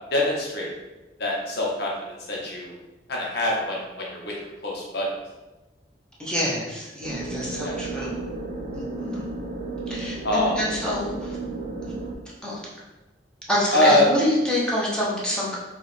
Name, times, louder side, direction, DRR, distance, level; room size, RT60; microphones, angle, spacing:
voice 1, 0.1-0.7 1.2-1.9 2.3-2.7 3.1-4.3 4.6-5.1 7.6-7.8 10.2-10.6 13.7-14.1, left 1 dB, 65° left, -3 dB, 1.0 m, -23 dB
voice 2, 6.2-8.2 8.7-9.3 9.9-11.4 11.8-11.9 12.4-12.6 13.5-15.6, equal, 5° left, -7 dB, 0.9 m, -27 dB
sound 1, 7.0-12.2, right 2 dB, 40° right, 0.5 m, -33 dB
4.6 x 2.4 x 3.3 m, 1.1 s
head